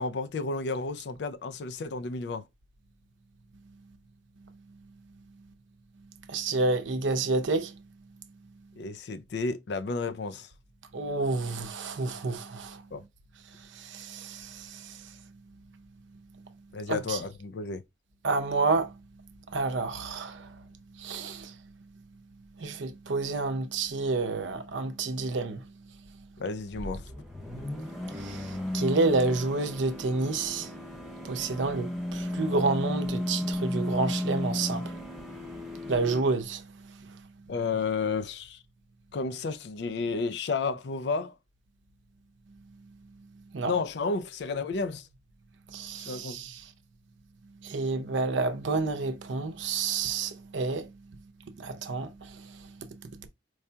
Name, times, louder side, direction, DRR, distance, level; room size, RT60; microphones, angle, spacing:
voice 1, 0.0-2.4 8.8-10.5 12.9-13.0 16.7-17.8 26.4-27.1 37.5-38.6 39.1-41.3 43.6-45.1 46.0-46.4, left 4 dB, 65° left, 0.4 m, -32 dB
voice 2, 6.3-7.8 10.9-12.8 13.5-15.2 16.9-17.2 18.2-19.0 19.5-20.6 21.0-21.5 22.6-25.7 28.1-30.8 31.2-35.0 35.9-37.2 43.5-43.7 45.7-46.7 47.6-50.9 51.6-53.3, right 3 dB, 90° right, 0.6 m, -30 dB
sound 1, 26.7-36.2, left 1 dB, ahead, 0.9 m, -34 dB
4.6 x 2.7 x 2.2 m
head